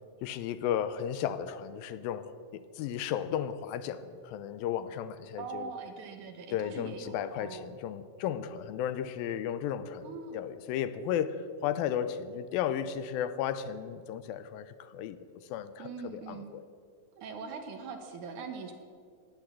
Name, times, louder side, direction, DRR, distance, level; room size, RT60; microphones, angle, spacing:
voice 1, 0.2-5.7 6.5-15.2 15.5-16.6, left 9 dB, 85° left, 13 dB, 2.5 m, -34 dB
voice 2, 5.4-7.7 10.0-10.4 15.8-16.5 17.2-18.7, right 5 dB, 65° right, 5 dB, 2.4 m, -42 dB
14.5 x 10.5 x 7.6 m, 2.1 s
omnidirectional pair, 4.1 m